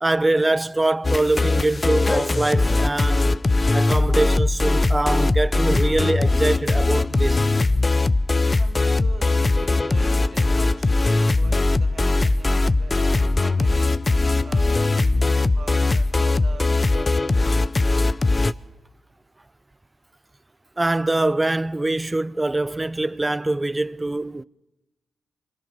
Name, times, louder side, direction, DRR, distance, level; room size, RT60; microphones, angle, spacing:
voice 1, 0.0-3.4 3.7-7.5 20.8-24.4, right 2 dB, 25° right, 0.7 m, -23 dB
sound 1, 1.0-18.5, left 2 dB, 35° left, 0.7 m, -20 dB
voice 2, 8.6-14.0 14.4-17.2, right 6 dB, 65° right, 2.1 m, -42 dB
25.5 x 21.5 x 6.9 m
supercardioid pair, 40°, 0 cm